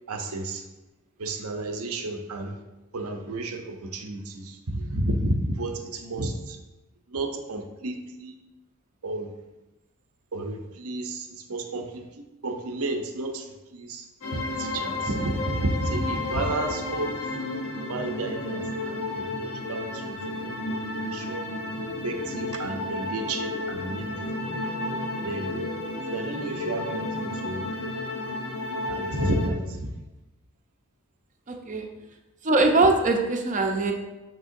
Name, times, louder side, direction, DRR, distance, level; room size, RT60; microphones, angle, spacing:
voice 1, 0.1-0.6 1.2-2.6 2.9-6.6 7.1-8.3 9.0-9.3 10.3-14.1 14.6-17.2 17.8-20.2 20.8-21.5 22.0-24.4 25.2-25.6 26.1-27.6 28.9-29.9, right 2 dB, 80° right, 4 dB, 0.8 m, -31 dB
sound 1, 14.2-29.5, left 2 dB, 80° left, 0.9 m, -32 dB
voice 2, 31.5-31.9 32.4-33.9, right 2 dB, 35° right, 3 dB, 0.7 m, -22 dB
6.7 x 6.3 x 2.6 m, 1.1 s
head